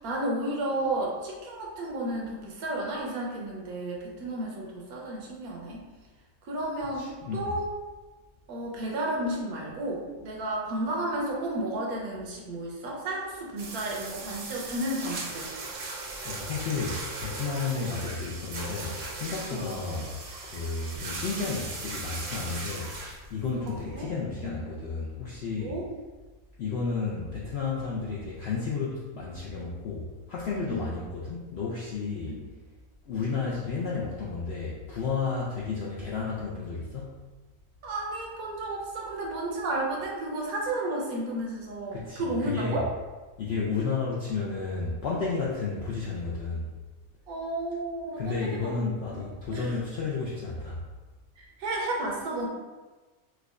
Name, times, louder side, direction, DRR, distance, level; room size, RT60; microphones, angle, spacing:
voice 1, 0.0-5.9 6.4-7.7 8.5-15.5 19.5-19.7 23.7-24.1 24.4-24.6 25.5-25.9 30.7-30.9 32.3-32.4 37.8-42.9 47.3-49.3 49.5-49.8 51.4-52.5, right 1 dB, 85° right, -2 dB, 1.2 m, -32 dB
voice 2, 7.0-7.5 16.2-20.2 20.4-22.9 23.3-25.7 26.6-32.4 33.1-37.2 41.9-42.8 43.4-46.7 48.2-50.8, left 4 dB, 65° left, -5 dB, 0.6 m, -32 dB
sound 1, 13.6-24.0, right 3 dB, 55° right, 0.8 m, -38 dB
4.6 x 2.2 x 2.4 m, 1.3 s
omnidirectional pair, 1.5 m